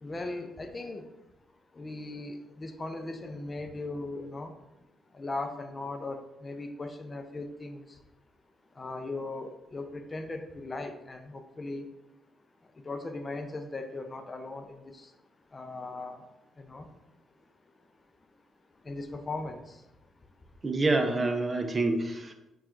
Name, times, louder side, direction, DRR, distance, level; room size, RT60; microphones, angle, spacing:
voice 1, 0.0-1.0 1.7-4.5 5.2-7.8 8.8-11.8 12.8-15.0 15.5-16.2 16.6-16.9 18.9-19.6, left 2 dB, 35° left, 7 dB, 0.4 m, -38 dB
voice 2, 20.6-22.3, right 2 dB, 35° right, 6 dB, 0.5 m, -27 dB
5.7 x 2.3 x 2.5 m, 0.97 s
supercardioid pair, 50°, 0 cm